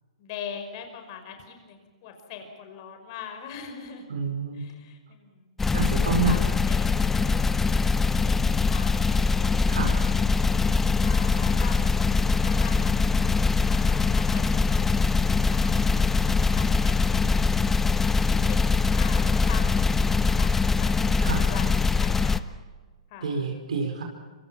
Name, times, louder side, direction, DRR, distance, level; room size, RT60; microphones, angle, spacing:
voice 1, 0.2-4.1 4.5-5.7 6.0-7.7 8.0-9.8 10.2-10.5 11.0-13.1 13.3-17.5 18.5-18.7 18.9-22.4 23.1-23.4, left 7 dB, 45° left, 5 dB, 5.5 m, -43 dB
voice 2, 4.1-4.6 5.7-6.4 9.7-10.0 21.2-21.5 23.2-24.0, right 4 dB, 80° right, 3 dB, 5.0 m, -28 dB
sound 1, 5.6-22.4, left 4 dB, 10° left, 0.8 m, -22 dB
26.0 x 24.5 x 5.9 m, 1.4 s
hypercardioid pair, 135°, 4 cm